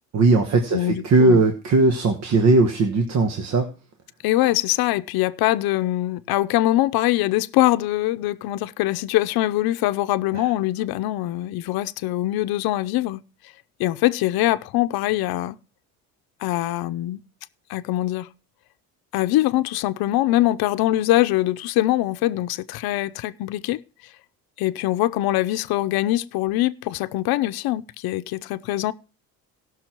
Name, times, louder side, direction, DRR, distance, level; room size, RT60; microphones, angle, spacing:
voice 1, 0.1-3.7 10.3-10.5, right 3 dB, 45° right, 1.5 m, -18 dB
voice 2, 0.7-1.4 4.2-13.2 13.8-15.6 16.4-17.2 17.7-18.3 19.1-23.8 24.6-28.9, left 15 dB, 80° left, 0.7 m, -23 dB
18.0 x 6.3 x 4.5 m
cardioid pair, 150°, 36 cm